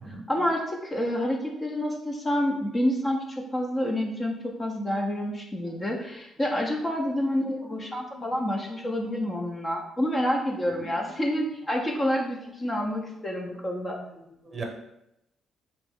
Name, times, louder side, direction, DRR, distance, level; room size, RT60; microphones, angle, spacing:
voice 1, 0.3-14.0, equal, 25° left, 0 dB, 0.6 m, -28 dB
voice 2, 14.2-14.6, right 2 dB, 30° right, 2 dB, 0.9 m, -39 dB
3.5 x 3.0 x 3.5 m, 0.85 s
cardioid pair, 90°, 0 cm